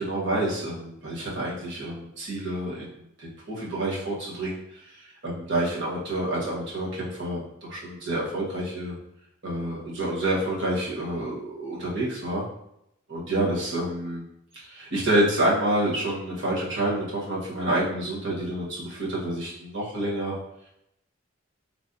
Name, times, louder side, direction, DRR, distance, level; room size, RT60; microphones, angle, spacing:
voice 1, 0.0-8.9 9.4-12.4 13.1-14.2 14.5-20.3, right 1 dB, 60° right, -5 dB, 1.2 m, -28 dB
3.9 x 3.3 x 2.6 m, 0.81 s
head